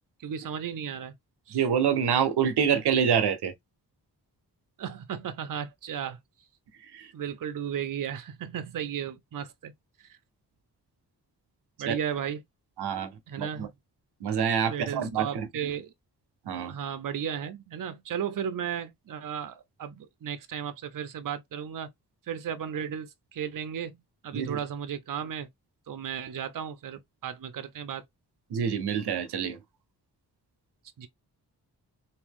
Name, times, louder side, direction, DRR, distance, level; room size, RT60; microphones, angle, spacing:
voice 1, 0.2-1.1 1.5-1.6 4.8-6.2 7.1-9.7 10.1-10.2 11.8-12.4 13.3-13.7 14.7-15.9 16.7-21.9 22.3-25.5 25.9-28.0 31.0-31.1, right 8 dB, 55° right, 0.7 m, -35 dB
voice 2, 1.5-3.5 6.9-7.1 11.9-12.0 12.8-13.1 13.4-13.7 14.2-15.7 16.5-16.7 24.3-24.6 28.5-29.6, right 7 dB, 90° right, 0.8 m, -26 dB
3.6 x 2.7 x 3.5 m
cardioid pair, 75°, 39 cm